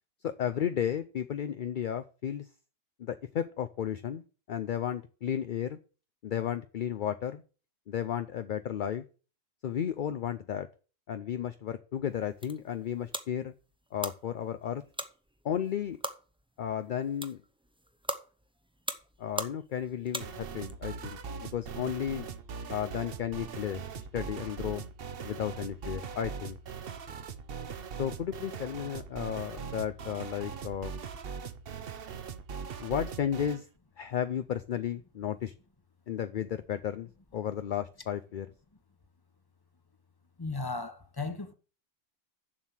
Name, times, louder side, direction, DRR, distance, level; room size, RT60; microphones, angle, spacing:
voice 1, 0.2-2.5 3.0-5.8 6.2-7.4 7.9-9.0 9.6-10.7 11.1-13.5 13.9-14.8 15.4-16.0 16.6-17.4 19.2-22.3 22.7-24.8 25.2-26.6 28.0-31.0 32.8-33.7 34.0-35.5 36.1-38.5, left 9 dB, 55° left, 0.6 m, -33 dB
sound 1, 12.1-20.7, right 1 dB, 5° right, 0.5 m, -41 dB
sound 2, 20.2-33.6, right 6 dB, 55° right, 1.0 m, -41 dB
voice 2, 40.4-41.5, left 3 dB, 20° left, 1.1 m, -35 dB
7.4 x 6.4 x 7.4 m
omnidirectional pair, 1.3 m